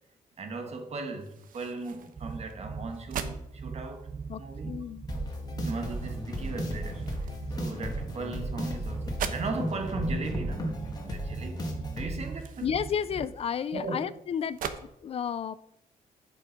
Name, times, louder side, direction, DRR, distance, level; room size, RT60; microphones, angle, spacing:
voice 1, 0.4-4.1 4.4-4.7 5.6-7.3 7.6-10.7 11.0-11.7 12.0-12.7 13.7-14.0, right 3 dB, 50° right, 1.5 m, -37 dB
sound 1, 1.2-14.8, right 7 dB, 90° right, 0.9 m, -44 dB
sound 2, 2.2-13.3, right 5 dB, 30° right, 0.6 m, -40 dB
voice 2, 4.3-5.1 12.6-14.6 15.0-15.6, left 8 dB, 45° left, 0.4 m, -32 dB
sound 3, 5.1-12.1, equal, 30° left, 1.8 m, -35 dB
11.0 x 5.7 x 5.2 m
wide cardioid pair, 145°, 14 cm